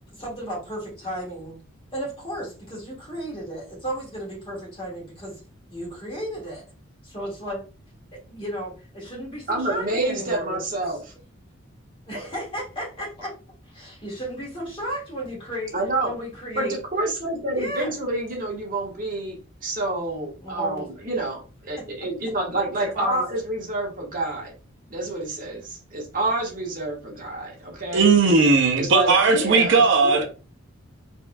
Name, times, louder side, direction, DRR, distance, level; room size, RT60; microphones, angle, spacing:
voice 1, 0.2-1.6 1.9-5.4 5.7-6.6 7.0-7.6 8.1-10.6 10.9-11.0 12.1-13.3 13.7-15.7 16.0-16.8 17.5-17.9 20.4-20.9 21.8-21.9 22.9-23.2, equal, 25° left, 1.9 m, -34 dB
voice 2, 9.5-11.0 15.7-16.1 16.6-19.4 19.6-24.5 24.9-28.1 28.8-30.2, right 2 dB, 40° right, 1.3 m, -28 dB
voice 3, 27.9-30.2, right 4 dB, 60° right, 0.5 m, -17 dB
4.2 x 3.4 x 2.2 m
head